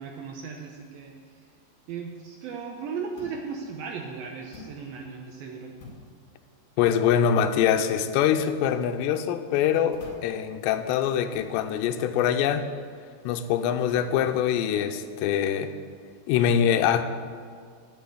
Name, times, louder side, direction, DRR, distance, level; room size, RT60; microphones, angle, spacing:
voice 1, 0.0-1.5 1.9-5.7, right 5 dB, 75° right, 2 dB, 2.2 m, -37 dB
sound 1, 3.2-3.5 4.5-4.8 5.8-6.1 6.8-7.1 8.0-8.2 8.8-9.0 9.9-10.4 11.3-11.6 12.5-12.7 13.9-14.2, left 2 dB, 55° left, 3.1 m, -47 dB
voice 2, 6.8-12.7 13.2-15.7 16.3-17.0, left 9 dB, 80° left, 7 dB, 2.7 m, -24 dB
11.5 x 6.2 x 8.3 m, 2.1 s
omnidirectional pair, 5.1 m